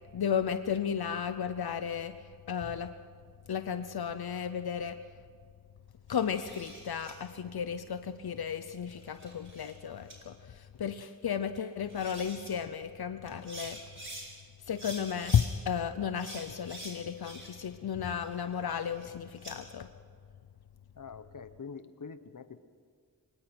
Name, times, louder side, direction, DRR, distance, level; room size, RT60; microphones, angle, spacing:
voice 1, 0.1-2.1 2.5-2.9 3.5-5.0 6.1-13.8 14.7-19.9, left 8 dB, 85° left, 10 dB, 0.8 m, -33 dB
sound 1, 6.1-7.1 8.7-9.7 10.1-10.2 11.6-11.7 11.9-12.5 13.3-14.3 14.7-15.5 16.2-17.7 18.0-19.5, right 1 dB, 35° right, 6.1 m, -46 dB
voice 2, 20.9-22.6, left 5 dB, 60° left, 12 dB, 1.1 m, -45 dB
24.0 x 20.5 x 6.1 m, 2.1 s
wide cardioid pair, 55°, 36 cm